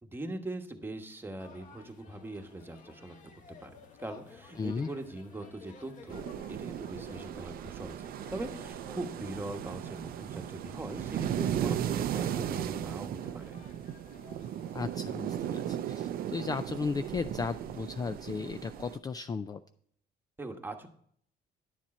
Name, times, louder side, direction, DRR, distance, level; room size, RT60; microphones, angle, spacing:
voice 1, 0.0-3.2 3.6-13.6 20.4-20.9, right 2 dB, 10° right, 5 dB, 1.2 m, -41 dB
sound 1, 1.4-14.9, left 5 dB, 50° left, 1.5 m, -55 dB
voice 2, 4.6-4.9 14.7-19.6, left 5 dB, 20° left, 10 dB, 0.4 m, -35 dB
sound 2, 6.1-19.0, right 10 dB, 60° right, 0.5 m, -36 dB
10.5 x 7.3 x 4.3 m, 0.63 s
cardioid pair, 110°, 17 cm